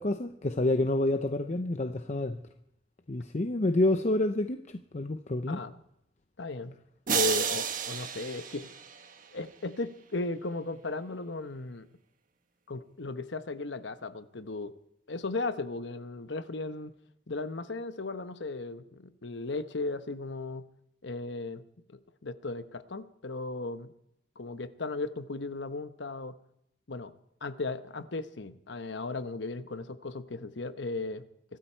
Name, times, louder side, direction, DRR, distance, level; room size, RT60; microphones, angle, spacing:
voice 1, 0.0-2.4 3.1-4.6 4.9-5.6, left 2 dB, 40° left, 8 dB, 0.7 m, -28 dB
voice 2, 6.4-6.8 7.1-8.7 9.3-11.9 12.7-14.8 15.1-16.9 17.3-20.7 21.0-21.6 21.9-23.9 24.4-26.4 26.9-27.1 27.4-31.2, left 3 dB, 70° left, 11 dB, 1.0 m, -36 dB
sound 1, 7.1-9.4, right 7 dB, 45° right, 1.3 m, -32 dB
24.5 x 13.0 x 4.5 m, 0.76 s
head